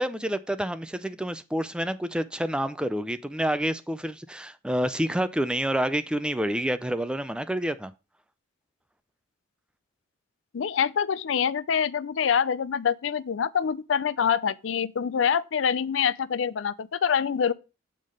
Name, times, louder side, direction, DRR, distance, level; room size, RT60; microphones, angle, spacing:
voice 1, 0.0-7.9, right 1 dB, 5° right, 0.4 m, -28 dB
voice 2, 10.5-17.5, left 7 dB, 75° left, 0.4 m, -25 dB
7.5 x 3.5 x 6.3 m
head